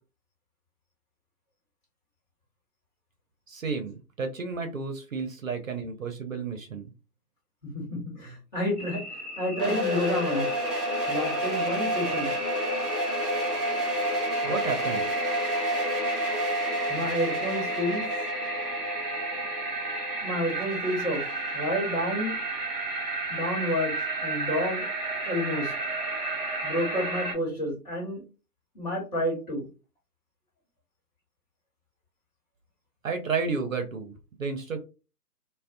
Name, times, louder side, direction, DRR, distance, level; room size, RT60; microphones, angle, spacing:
voice 1, 3.5-6.9 14.4-15.1 33.0-34.1 34.4-34.9, right 4 dB, 55° right, 6 dB, 0.6 m, -32 dB
voice 2, 7.6-9.0 9.4-10.5 11.1-12.3 16.9-18.0 20.2-21.2 21.5-22.4 23.3-24.0 24.2-24.8 25.2-25.7 26.6-28.2 28.7-29.7, equal, 30° left, -4 dB, 1.3 m, -29 dB
sound 1, 8.8-27.3, right 2 dB, 35° right, 0.9 m, -33 dB
sound 2, 9.6-22.4, equal, ahead, 0.7 m, -30 dB
2.4 x 2.1 x 2.5 m, 0.31 s
figure-of-eight pair, 145°, 48 cm